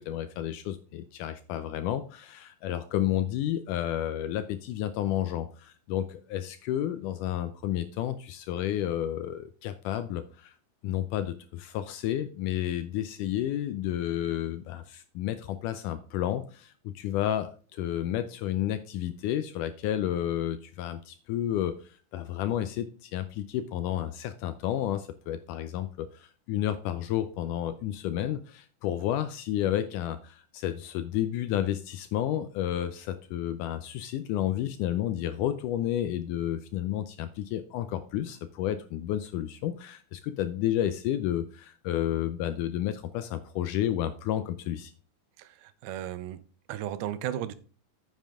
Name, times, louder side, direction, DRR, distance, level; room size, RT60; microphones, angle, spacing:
voice 1, 0.0-10.5 10.8-44.9, left 12 dB, 85° left, 1.8 m, -31 dB
voice 2, 45.4-46.4 46.7-47.5, right 11 dB, 90° right, 2.6 m, -35 dB
9.2 x 7.3 x 3.5 m
omnidirectional pair, 4.3 m